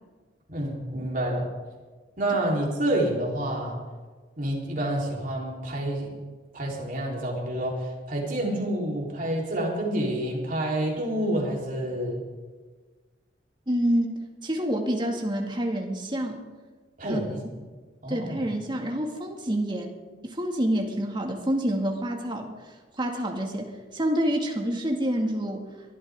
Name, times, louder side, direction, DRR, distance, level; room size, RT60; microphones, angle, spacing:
voice 1, 0.5-1.5 2.2-3.8 4.4-6.2 6.5-12.2 17.0-17.4 18.0-18.4, right 1 dB, 50° right, -2 dB, 4.0 m, -28 dB
voice 2, 13.7-16.4 17.0-17.2 18.1-19.9 20.2-22.5 23.0-23.7 23.9-25.6, right 1 dB, 25° right, 1 dB, 2.2 m, -27 dB
23.0 x 12.5 x 3.8 m, 1.4 s
head